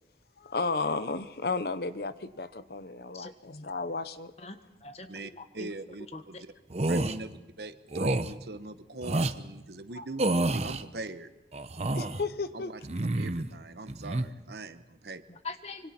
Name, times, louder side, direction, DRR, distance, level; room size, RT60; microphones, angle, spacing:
voice 1, 0.4-4.3 11.9-12.7, left 3 dB, 60° left, 12 dB, 0.9 m, -33 dB
voice 2, 4.4-5.7 6.1-6.4 6.9-7.1 9.0-9.1 9.9-10.1 12.1-12.2 15.3-15.9, left 3 dB, 35° left, 8 dB, 1.3 m, -43 dB
voice 3, 5.1-6.5 6.9-11.3 12.5-15.2, right 2 dB, 65° right, 10 dB, 1.1 m, -41 dB
sound 1, 6.7-7.2 7.9-8.3 9.0-9.4 10.2-10.8 11.5-12.2 12.8-13.5 13.9-14.3, right 2 dB, 35° right, 0.8 m, -28 dB
25.5 x 24.5 x 4.4 m, 1.1 s
head